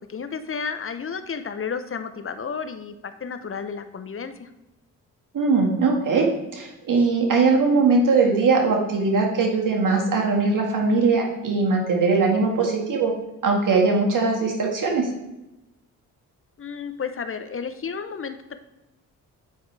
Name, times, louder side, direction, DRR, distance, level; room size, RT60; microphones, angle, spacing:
voice 1, 0.0-4.5 16.6-18.6, left 6 dB, 35° left, 10 dB, 0.8 m, -32 dB
voice 2, 5.3-13.1 13.4-15.1, right 4 dB, 60° right, 0 dB, 1.9 m, -20 dB
9.3 x 4.7 x 3.3 m, 0.98 s
supercardioid pair, 60°, 35 cm